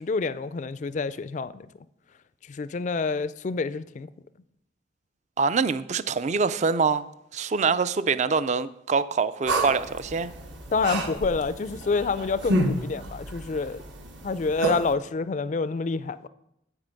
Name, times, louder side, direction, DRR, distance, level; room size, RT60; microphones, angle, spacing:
voice 1, 0.0-1.7 2.5-4.1 10.7-13.8 14.2-16.2, left 4 dB, 40° left, 0.3 m, -28 dB
voice 2, 5.4-7.1 7.3-10.3, right 5 dB, 35° right, 0.3 m, -25 dB
sound 1, 9.5-14.9, right 1 dB, 65° right, 1.2 m, -30 dB
8.9 x 8.1 x 5.2 m
head